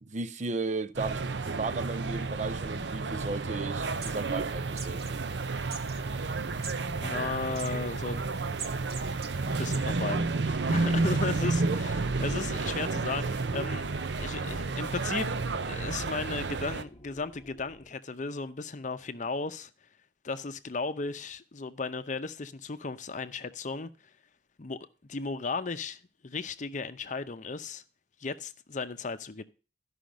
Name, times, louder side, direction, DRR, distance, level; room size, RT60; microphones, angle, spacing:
voice 1, 0.0-5.2 11.6-11.8, right 3 dB, 40° right, 0.5 m, -35 dB
sound 1, 0.9-16.8, right 3 dB, 80° right, 0.7 m, -31 dB
sound 2, 3.9-9.8, right 6 dB, 60° right, 1.5 m, -46 dB
voice 2, 7.0-8.2 9.5-13.9 14.2-15.4 15.7-19.7 20.2-23.9 24.6-27.8 28.2-29.4, left 4 dB, 45° left, 0.7 m, -35 dB
sound 3, 8.6-17.9, equal, 20° left, 1.1 m, -54 dB
13.0 x 5.7 x 5.2 m
head